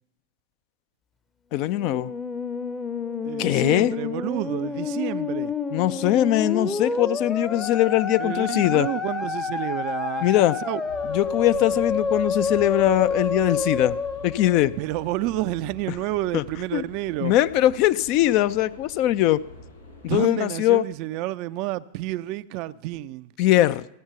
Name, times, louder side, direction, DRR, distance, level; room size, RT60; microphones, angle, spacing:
voice 1, 1.5-2.1 3.4-3.9 5.7-8.9 10.2-10.6 11.1-14.0 14.2-14.7 16.3-16.4 16.7-16.8 17.2-19.4 20.0-20.8 23.4-23.9, left 14 dB, 40° left, 0.4 m, -21 dB
Musical instrument, 1.7-15.0, left 5 dB, 15° left, 0.7 m, -29 dB
voice 2, 3.2-5.5 8.2-10.3 10.7-10.8 14.8-17.3 20.0-23.3, right 16 dB, 45° right, 0.4 m, -30 dB
sound 1, 10.9-20.2, left 3 dB, 85° left, 4.2 m, -45 dB
14.0 x 7.9 x 6.8 m
figure-of-eight pair, 90°, 0 cm